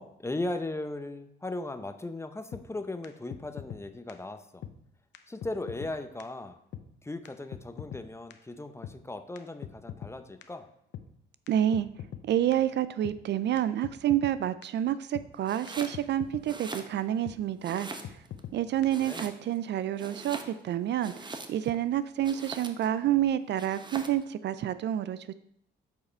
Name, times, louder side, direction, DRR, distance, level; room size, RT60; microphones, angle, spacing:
voice 1, 0.0-4.6 5.3-6.6 7.0-10.7 19.1-19.3, left 2 dB, 15° left, 9 dB, 0.6 m, -37 dB
sound 1, 2.5-2.6 3.0-3.1 3.3-3.8 4.1-4.2 4.6-4.7 5.1-5.2 5.4-5.9 6.2-6.3 6.7-6.8 7.2-7.3 7.5-8.0 8.3-8.4 8.8-8.9 9.4-10.1 10.4-10.5 10.9-11.1 11.5-11.6 11.7-12.2 12.5-12.6 13.0-13.2 13.6-13.7 13.8-14.3 14.6-14.7 15.1-15.3 15.7-15.8 15.9-16.4 16.7-16.8 17.3-17.4 17.8-17.9 18.0-18.6 18.8-18.9, left 10 dB, 65° left, 0.7 m, -41 dB
voice 2, 11.5-11.9 12.2-17.9 18.5-25.3, right 11 dB, 60° right, 14 dB, 0.4 m, -28 dB
Domestic sounds home sounds, 15.4-16.0 16.4-17.3 17.6-18.4 18.9-19.6 20.0-21.8 22.2-23.0 23.6-24.2, right 3 dB, 20° right, 0.8 m, -42 dB
8.4 x 4.8 x 4.4 m, 0.73 s
cardioid pair, 90°, 20 cm